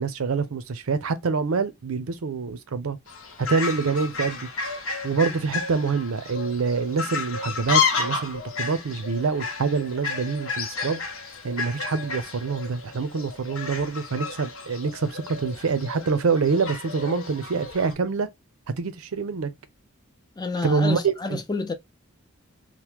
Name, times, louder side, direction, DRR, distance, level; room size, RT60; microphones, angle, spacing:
voice 1, 0.0-3.0 3.4-4.5 5.0-11.0 11.4-18.3 18.7-19.5 20.6-21.4, right 4 dB, 80° right, 0.5 m, -26 dB
Fowl, 3.1-17.9, left 5 dB, 65° left, 0.8 m, -31 dB
voice 2, 20.4-21.7, left 3 dB, 20° left, 0.5 m, -29 dB
2.9 x 2.1 x 3.3 m
head